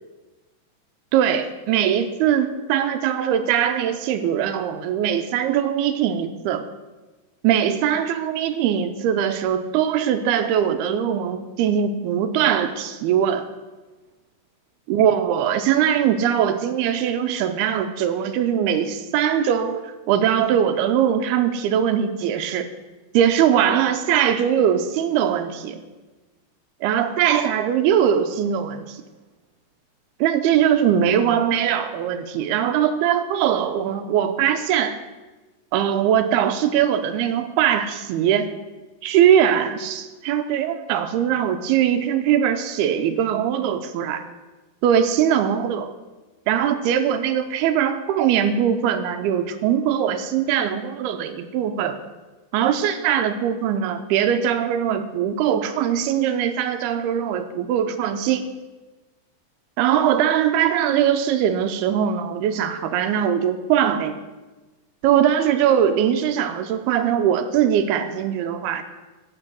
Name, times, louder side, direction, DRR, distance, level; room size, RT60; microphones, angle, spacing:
voice 1, 1.1-6.6 7.4-13.5 14.9-22.7 23.1-25.8 26.8-29.0 30.2-35.0 35.7-38.5 39.0-44.2 44.8-45.9 46.5-52.0 52.5-58.5 59.8-64.2 65.0-68.8, right 9 dB, 80° right, 9 dB, 2.5 m, -21 dB
15.5 x 8.1 x 6.3 m, 1.2 s
omnidirectional pair, 5.0 m